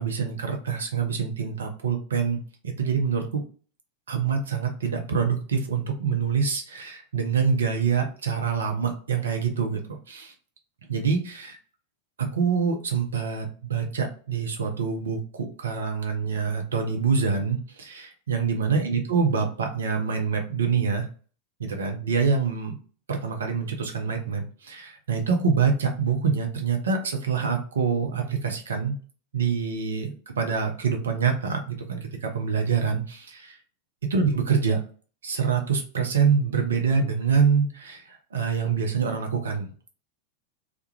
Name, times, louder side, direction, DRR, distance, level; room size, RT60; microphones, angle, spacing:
voice 1, 0.0-2.4 2.6-3.4 4.1-10.3 10.9-11.5 12.3-21.1 21.6-22.7 23.1-28.9 29.3-33.6 34.1-34.8 35.2-39.7, right 6 dB, 65° right, 4 dB, 0.6 m, -25 dB
2.3 x 2.1 x 2.8 m, 0.40 s
figure-of-eight pair, 90°, 0 cm